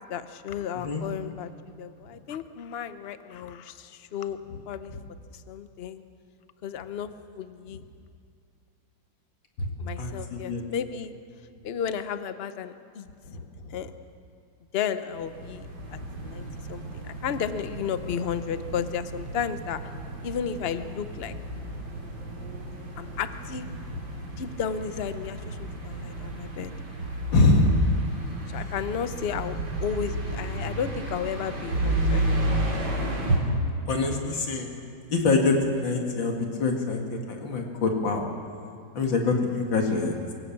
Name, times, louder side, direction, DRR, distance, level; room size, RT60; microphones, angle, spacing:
voice 1, 0.1-1.5 1.8-4.4 4.7-4.9 5.3-6.0 6.6-7.1 7.3-7.8 9.8-11.1 11.6-13.1 13.7-13.9 14.7-19.8 20.2-21.3 23.0-23.7 24.4-26.7 28.5-32.2, left 7 dB, 55° left, 11 dB, 0.6 m, -33 dB
voice 2, 10.0-10.6 13.2-13.4 27.3-27.7 33.9-34.7 35.1-38.3 38.9-40.1, left 3 dB, 75° left, 2 dB, 2.8 m, -25 dB
sound 1, 15.1-33.4, right 1 dB, 85° right, 4.0 m, -32 dB
23.0 x 16.5 x 7.4 m, 2.3 s
omnidirectional pair, 2.1 m